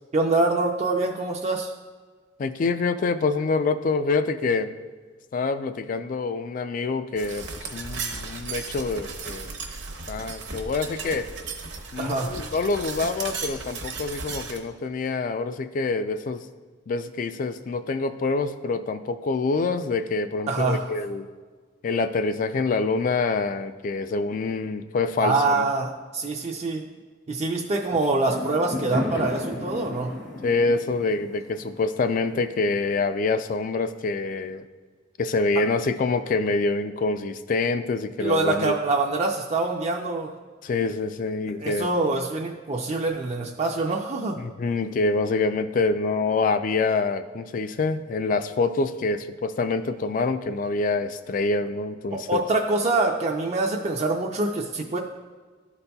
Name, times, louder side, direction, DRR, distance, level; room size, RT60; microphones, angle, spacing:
voice 1, 0.1-1.7 12.0-12.4 20.5-20.9 25.2-26.8 27.3-30.2 35.6-35.7 38.2-40.4 41.6-44.4 52.1-55.0, right 2 dB, 35° right, 1 dB, 0.4 m, -25 dB
voice 2, 2.4-4.8 5.3-9.5 10.1-11.3 11.9-16.5 16.9-21.3 21.8-25.6 30.4-34.6 35.2-38.7 40.6-41.9 44.4-52.4, left 3 dB, 45° left, 11 dB, 0.3 m, -26 dB
sound 1, 7.2-14.6, right 4 dB, 65° right, 0.8 m, -35 dB
Fireworks, 28.2-32.7, left 2 dB, 65° left, 1.3 m, -33 dB
12.0 x 4.1 x 2.2 m, 1.5 s
head